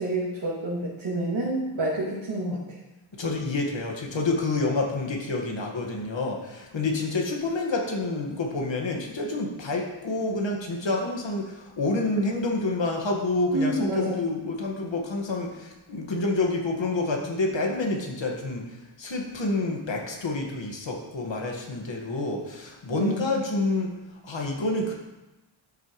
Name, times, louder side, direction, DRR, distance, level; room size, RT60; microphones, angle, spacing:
voice 1, 0.0-2.8 13.5-14.3 22.9-23.2, right 1 dB, 70° right, -8 dB, 2.7 m, -28 dB
voice 2, 3.2-23.9 24.2-24.9, left 2 dB, 65° left, 0 dB, 1.8 m, -28 dB
13.5 x 8.3 x 3.2 m, 1.0 s
wide cardioid pair, 125°, 48 cm